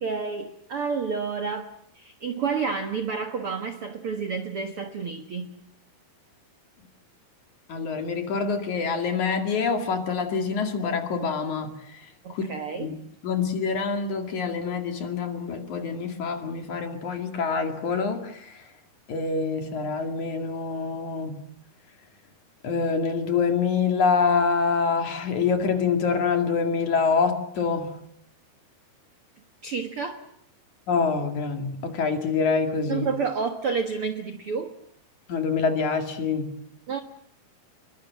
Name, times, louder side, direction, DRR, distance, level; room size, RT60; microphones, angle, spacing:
voice 1, 0.0-5.6 12.2-12.9 29.6-30.3 32.9-34.7 36.9-37.0, right 5 dB, 65° right, 8 dB, 1.4 m, -30 dB
voice 2, 7.7-11.7 12.3-12.4 12.8-13.0 13.2-18.5 19.1-21.4 22.6-27.9 30.9-33.1 35.3-36.5, left 5 dB, 50° left, 6 dB, 3.4 m, -26 dB
27.0 x 22.5 x 7.5 m, 0.70 s
omnidirectional pair, 4.7 m